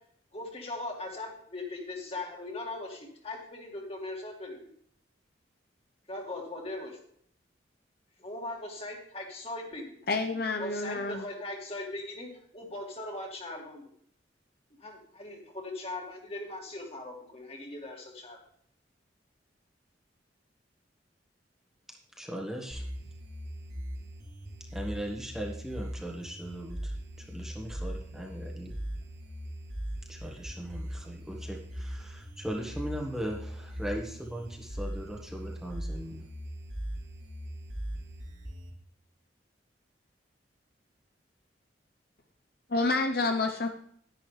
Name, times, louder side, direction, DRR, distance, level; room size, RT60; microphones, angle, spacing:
voice 1, 0.3-4.7 6.1-7.0 8.2-10.0 10.6-13.8 14.8-18.4, left 2 dB, 35° left, 0 dB, 2.4 m, -39 dB
voice 2, 10.1-11.2 42.7-43.7, left 3 dB, 55° left, 5 dB, 0.8 m, -28 dB
voice 3, 22.2-22.8 24.7-26.9 27.2-28.8 30.1-36.3, equal, 5° right, -1 dB, 1.5 m, -38 dB
sound 1, 22.7-38.7, equal, 65° right, 4.0 m, -40 dB
11.0 x 10.5 x 3.3 m, 0.64 s
head